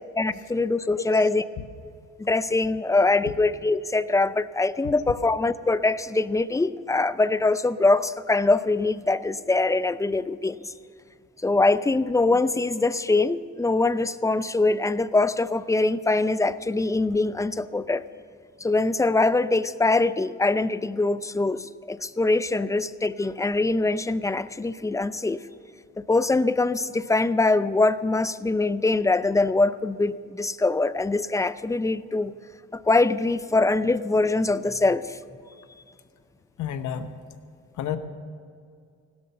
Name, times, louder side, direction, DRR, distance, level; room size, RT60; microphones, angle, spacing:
voice 1, 0.2-1.4 2.2-10.7 11.4-18.0 18.6-25.4 26.0-32.3 32.7-35.2, left 3 dB, 10° left, 14 dB, 0.5 m, -23 dB
voice 2, 1.0-1.3 36.6-37.2 37.7-38.0, left 9 dB, 75° left, 9 dB, 1.1 m, -30 dB
16.5 x 12.5 x 6.8 m, 2.3 s
cardioid pair, 90°, 30 cm